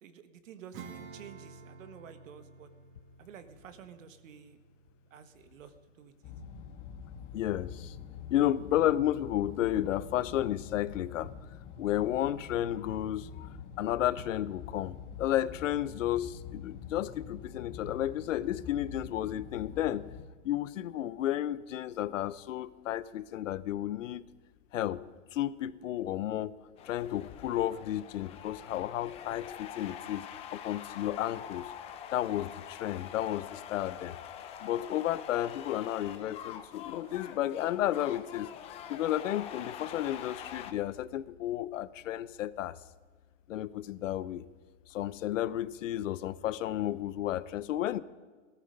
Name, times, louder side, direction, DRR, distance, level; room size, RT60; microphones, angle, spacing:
voice 1, 0.0-2.7 3.2-4.6 5.1-6.3, right 8 dB, 70° right, 9 dB, 1.6 m, -51 dB
Acoustic guitar / Strum, 0.7-6.7, right 5 dB, 45° right, 2.5 m, -52 dB
sound 1, 6.2-20.2, left 6 dB, 35° left, 1.6 m, -45 dB
voice 2, 7.3-8.0 8.3-11.3 11.8-13.5 13.8-20.1 20.4-24.3 24.7-26.5 26.8-31.7 32.1-34.2 34.6-38.5 38.9-42.8 43.5-44.4 44.9-48.0, left 12 dB, 70° left, 17 dB, 0.8 m, -32 dB
sound 2, 26.8-40.7, left 9 dB, 15° left, 0.5 m, -45 dB
18.0 x 13.5 x 5.4 m, 1.4 s
hypercardioid pair, 140°, 40 cm